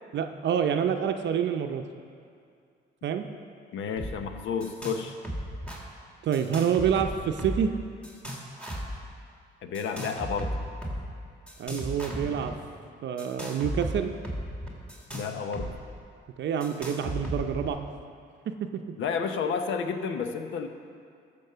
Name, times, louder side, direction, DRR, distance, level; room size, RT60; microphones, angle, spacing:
voice 1, 0.1-1.8 3.0-3.3 6.2-7.7 11.6-12.5 13.0-14.1 16.4-17.8 18.5-18.8, right 8 dB, 65° right, 6 dB, 0.6 m, -27 dB
voice 2, 3.7-5.1 9.6-10.5 15.1-15.7 19.0-20.7, left 6 dB, 75° left, 7 dB, 0.9 m, -31 dB
sound 1, 4.0-4.1 4.4-5.0 5.2-5.8 6.3-7.7 8.0-9.0 9.7-11.0 11.5-12.5 13.2-15.7 16.0-16.1 16.6-17.7, equal, 5° left, 2.2 m, -35 dB
13.5 x 5.3 x 6.7 m, 2.3 s
cardioid pair, 90°, 20 cm